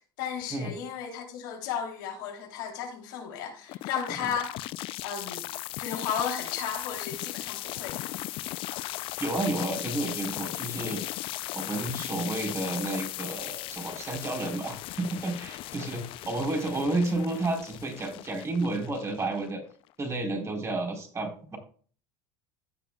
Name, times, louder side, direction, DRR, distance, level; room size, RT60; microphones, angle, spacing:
voice 1, 0.2-4.7 5.0-5.5 5.8-8.2, left 7 dB, 75° left, 3.3 m, -34 dB
sound 1, 3.7-19.7, left 17 dB, 55° left, 0.5 m, -37 dB
voice 2, 9.2-11.0 11.5-19.6 20.0-21.6, right 2 dB, 25° right, 4.0 m, -31 dB
16.0 x 6.9 x 2.3 m
hypercardioid pair, 90°, 11 cm